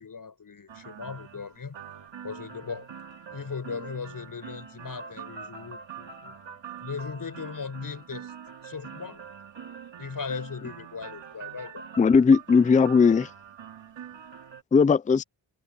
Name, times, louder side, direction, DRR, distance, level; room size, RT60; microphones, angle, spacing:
voice 1, 0.0-1.8 2.2-2.9 3.3-6.3 6.8-8.3 8.6-9.2 10.0-11.8 14.1-14.2, left 5 dB, 50° left, 7.5 m, -38 dB
sound 1, 0.7-14.6, right 7 dB, 90° right, 2.5 m, -44 dB
voice 2, 12.0-13.3 14.7-15.2, left 5 dB, 20° left, 0.4 m, -18 dB
wide cardioid pair, 145°, 43 cm